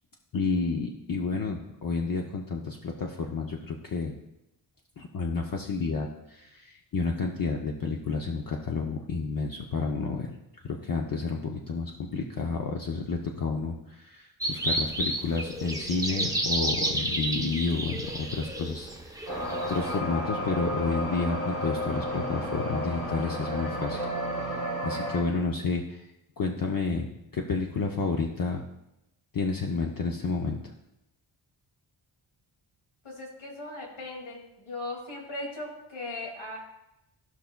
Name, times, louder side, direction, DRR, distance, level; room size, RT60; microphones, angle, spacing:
voice 1, 0.3-4.1 5.0-10.3 10.6-24.1 24.3-26.1 26.4-28.6 29.3-30.7, left 4 dB, 45° left, 1 dB, 0.6 m, -30 dB
sound 1, 14.4-20.0, right 1 dB, 10° right, 0.6 m, -31 dB
sound 2, 19.3-25.2, equal, 30° left, 1.8 m, -32 dB
voice 2, 33.0-36.6, left 2 dB, 80° left, -1 dB, 2.3 m, -38 dB
14.5 x 5.7 x 2.2 m, 0.89 s
wide cardioid pair, 125°, 47 cm